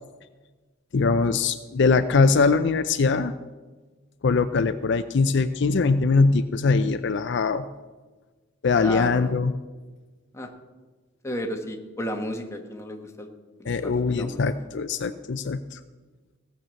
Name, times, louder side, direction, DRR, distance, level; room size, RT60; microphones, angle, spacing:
voice 1, 0.9-3.3 4.2-7.7 8.6-9.5 13.7-15.8, left 4 dB, 60° left, 10 dB, 0.5 m, -22 dB
voice 2, 8.8-9.3 10.3-10.5 11.2-13.3 13.6-14.5, equal, 15° left, 3 dB, 1.3 m, -33 dB
16.5 x 6.6 x 7.6 m, 1.3 s
head